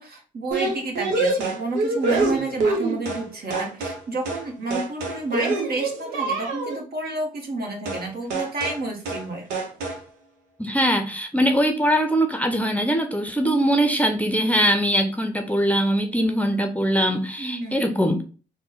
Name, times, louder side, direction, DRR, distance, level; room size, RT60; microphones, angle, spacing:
voice 1, 0.0-9.4 17.4-17.8, right 2 dB, 55° right, 1 dB, 1.3 m, -30 dB
sound 1, 0.5-3.3 3.5-4.0 4.3-4.5 4.7-6.8 7.9-8.1 8.3-8.8 9.1-9.3 9.5-10.0, right 3 dB, 90° right, 0.7 m, -26 dB
voice 2, 10.6-18.2, equal, 10° left, 5 dB, 0.6 m, -22 dB
3.7 x 2.2 x 3.8 m, 0.36 s
hypercardioid pair, 45°, 19 cm